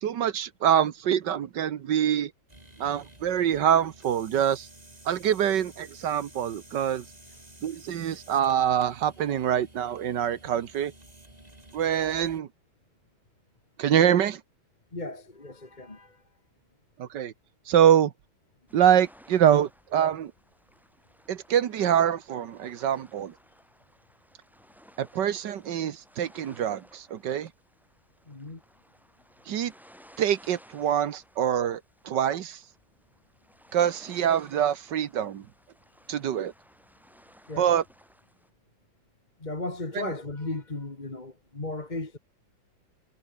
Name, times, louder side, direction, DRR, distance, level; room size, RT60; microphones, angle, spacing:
voice 1, 0.0-2.3 2.8-4.7 5.0-7.0 7.6-10.9 11.7-12.5 13.8-14.4 17.0-17.3 17.7-18.1 18.7-20.3 21.3-23.3 25.0-27.5 29.5-29.7 30.2-32.6 33.7-35.5 36.1-36.5 37.6-37.8 39.9-40.1, right 9 dB, 65° right, 1.6 m, -25 dB
sound 1, 2.5-12.4, right 1 dB, 20° right, 4.4 m, -52 dB
voice 2, 14.9-16.2 28.3-28.6 37.5-37.7 39.4-42.2, left 2 dB, 20° left, 2.3 m, -35 dB
sound 2, 18.7-38.5, equal, ahead, 6.1 m, -57 dB
omnidirectional pair, 2.1 m